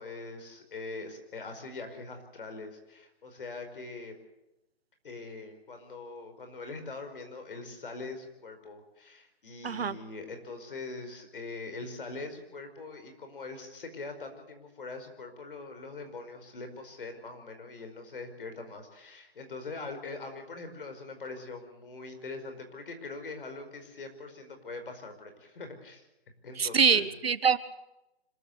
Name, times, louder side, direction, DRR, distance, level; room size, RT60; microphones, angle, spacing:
voice 1, 0.0-4.1 5.0-26.1 26.4-27.1, left 3 dB, 60° left, 7 dB, 5.0 m, -42 dB
voice 2, 9.6-10.0 26.6-27.6, right 6 dB, 70° right, 13 dB, 1.5 m, -24 dB
26.0 x 14.0 x 8.0 m, 0.91 s
hypercardioid pair, 170°, 31 cm